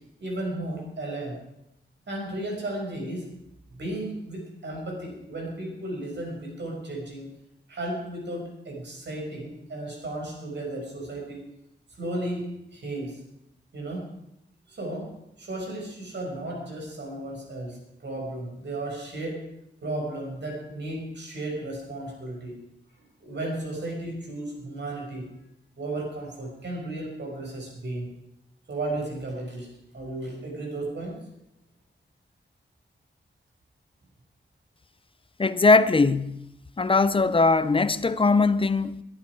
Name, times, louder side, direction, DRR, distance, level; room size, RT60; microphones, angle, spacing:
voice 1, 0.2-1.4 2.1-3.3 3.7-7.3 7.7-11.4 12.0-13.2 13.7-14.1 14.7-19.5 19.8-22.6 23.0-25.3 25.8-28.1 28.7-29.7 29.9-31.2, right 1 dB, 70° right, 6.2 m, -34 dB
voice 2, 35.4-36.5 36.8-39.0, left 3 dB, 30° left, 0.6 m, -20 dB
21.5 x 11.5 x 4.9 m
wide cardioid pair, 130°, 19 cm